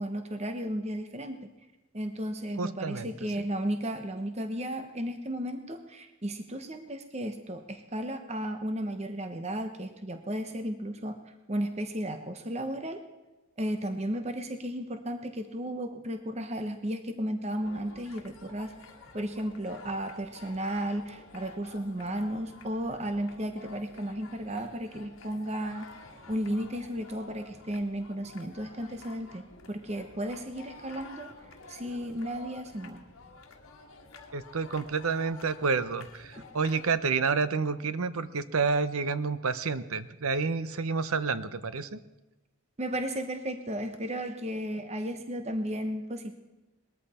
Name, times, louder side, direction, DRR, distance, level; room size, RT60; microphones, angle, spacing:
voice 1, 0.0-1.5 1.9-11.2 11.5-13.0 13.6-18.7 19.1-25.9 26.3-31.3 31.7-33.0 36.4-36.5 42.8-46.3, equal, 30° right, 7 dB, 1.0 m, -34 dB
voice 2, 2.6-3.4 34.3-42.0, right 4 dB, 70° right, 13 dB, 0.8 m, -29 dB
sound 1, 17.6-37.0, left 3 dB, 60° left, 1.9 m, -50 dB
20.0 x 13.5 x 4.3 m, 1.1 s
head